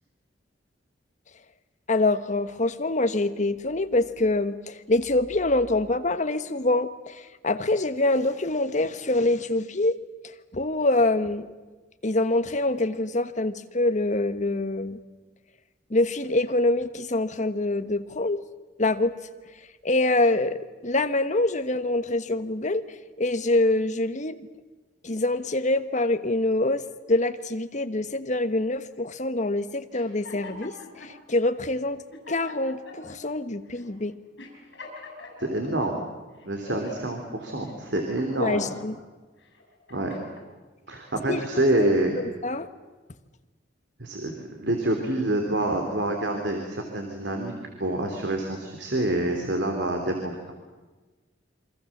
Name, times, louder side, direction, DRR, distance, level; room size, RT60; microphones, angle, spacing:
voice 1, 1.9-10.0 10.5-11.5 12.0-15.0 15.9-18.4 18.8-19.1 19.8-22.8 23.2-24.4 25.0-26.8 27.1-34.1 38.4-38.9 41.3-41.4 41.8-41.9 42.4-42.7, left 2 dB, 40° left, 10 dB, 1.3 m, -25 dB
sound 1, 29.9-31.1 31.8-31.9 32.1-33.2 33.7-33.9 34.4-35.9 36.4-37.1 37.6-38.9 39.5-40.5, left 2 dB, 70° left, 7.1 m, -43 dB
voice 2, 35.4-36.0 36.4-38.7 39.9-40.1 40.9-42.1 44.0-47.5 47.8-50.5, right 1 dB, 70° right, 3 dB, 3.3 m, -27 dB
28.0 x 24.5 x 7.4 m, 1.3 s
head